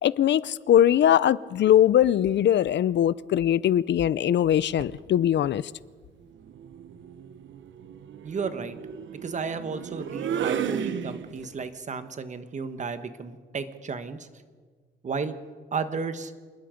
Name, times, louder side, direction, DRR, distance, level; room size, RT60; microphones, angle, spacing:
voice 1, 0.0-5.6, left 11 dB, 65° left, 0.5 m, -21 dB
sound 1, 4.5-5.0 6.4-11.6, right 8 dB, 75° right, 1.1 m, -34 dB
voice 2, 8.2-8.7 9.1-14.3 15.0-15.3 15.7-16.3, right 5 dB, 40° right, 1.3 m, -33 dB
27.5 x 20.0 x 5.1 m
wide cardioid pair, 155°, 20 cm